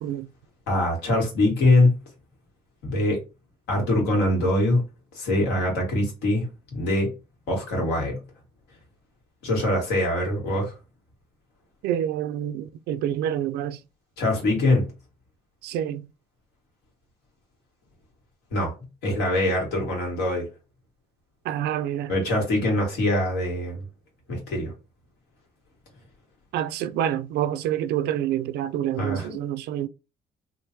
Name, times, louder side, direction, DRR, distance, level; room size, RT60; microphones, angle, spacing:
voice 1, 0.7-1.9 2.8-3.2 3.7-4.8 5.1-7.1 7.5-8.2 9.4-10.7 14.2-14.9 18.5-18.7 19.0-20.5 22.1-23.8 24.3-24.7 29.0-29.3, left 1 dB, 85° left, 1.8 m, -23 dB
voice 2, 11.8-13.8 15.6-16.1 21.5-22.1 26.5-29.9, right 11 dB, 80° right, 0.4 m, -27 dB
3.6 x 2.5 x 2.8 m
cardioid pair, 110°, 17 cm